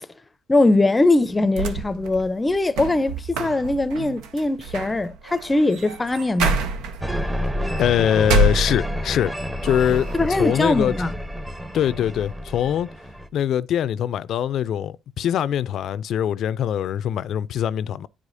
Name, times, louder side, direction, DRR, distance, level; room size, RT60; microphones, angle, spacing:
voice 1, 0.5-6.6 10.1-11.1, left 2 dB, 20° left, 0.6 m, -21 dB
sound 1, 1.3-9.2 9.6-10.4, right 2 dB, 90° right, 0.9 m, -28 dB
sound 2, 7.0-13.3, equal, 10° right, 0.9 m, -29 dB
voice 2, 7.8-9.3 9.6-11.1 11.7-12.9 13.3-18.1, left 10 dB, 65° left, 0.4 m, -23 dB
10.0 x 4.9 x 2.6 m
cardioid pair, 90°, 0 cm